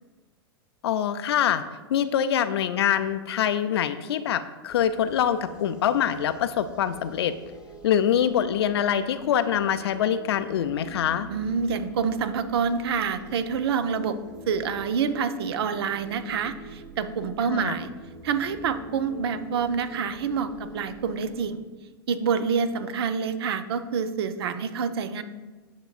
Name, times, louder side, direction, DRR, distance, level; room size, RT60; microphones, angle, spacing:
voice 1, 0.8-1.6 1.9-7.4 7.8-11.3 17.5-17.8, left 9 dB, 75° left, 11 dB, 0.4 m, -24 dB
sound 1, 4.7-21.4, right 3 dB, 5° right, 1.0 m, -46 dB
voice 2, 11.3-14.2 14.5-17.9 18.2-21.6 22.1-25.2, right 6 dB, 70° right, 11 dB, 0.6 m, -27 dB
9.1 x 6.2 x 2.4 m, 1.3 s
hypercardioid pair, 115°, 13 cm